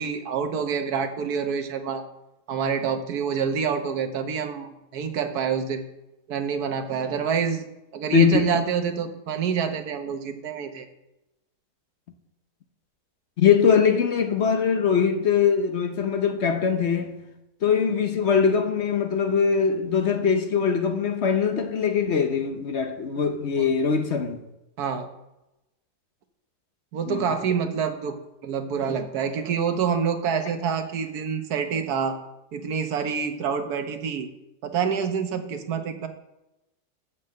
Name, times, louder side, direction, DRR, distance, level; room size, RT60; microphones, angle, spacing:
voice 1, 0.0-2.0 2.5-5.9 6.3-7.7 7.9-10.9 23.6-23.7 24.8-25.1 26.9-28.2 28.4-32.2 32.5-34.3 34.6-36.1, right 6 dB, 80° right, 1.5 m, -27 dB
voice 2, 8.1-8.5 13.4-17.2 17.6-24.4 27.1-27.3, left 6 dB, 50° left, 1.0 m, -22 dB
7.2 x 6.5 x 7.6 m
omnidirectional pair, 1.6 m